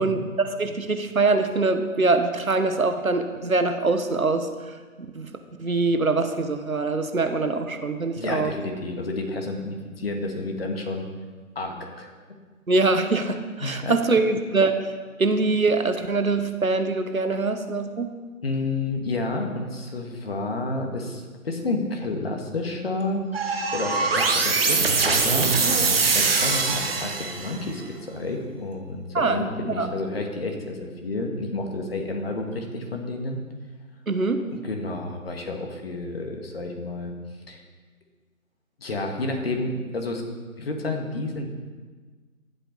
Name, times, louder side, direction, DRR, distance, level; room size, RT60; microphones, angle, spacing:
voice 1, 0.0-4.5 5.1-5.3 5.6-8.5 12.7-14.9 15.2-18.1 29.1-29.4 29.8-29.9 34.1-34.4, right 3 dB, 75° right, 8 dB, 1.3 m, -23 dB
voice 2, 8.1-11.1 11.5-12.1 13.6-13.9 18.4-23.3 23.7-25.7 26.1-33.4 34.6-37.1 37.5-37.6 38.8-40.2 40.6-41.5, left 2 dB, 45° left, 3 dB, 1.7 m, -30 dB
sound 1, 23.3-27.6, right 4 dB, 45° right, 1.4 m, -22 dB
14.5 x 8.2 x 4.1 m, 1.4 s
figure-of-eight pair, 150°, 42 cm